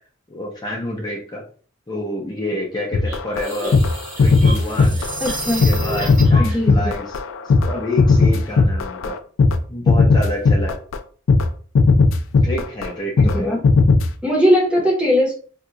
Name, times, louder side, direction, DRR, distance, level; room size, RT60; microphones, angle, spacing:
voice 1, 0.3-1.4 1.9-3.8 4.2-5.0 5.4-7.2 7.4-9.2 9.7-10.8 12.4-13.6, left 1 dB, 20° left, -3 dB, 0.6 m, -28 dB
sound 1, 2.9-9.6 9.9-11.0 11.3-11.5 11.7-12.9 13.2-13.4 13.6-14.1, left 3 dB, 85° left, 0.4 m, -16 dB
sound 2, 3.1-6.6, right 1 dB, 45° right, 1.0 m, -28 dB
voice 2, 5.2-5.7 6.4-6.9 13.2-13.6 14.2-15.3, equal, 5° right, -2 dB, 0.8 m, -19 dB
2.8 x 2.3 x 3.7 m, 0.42 s
head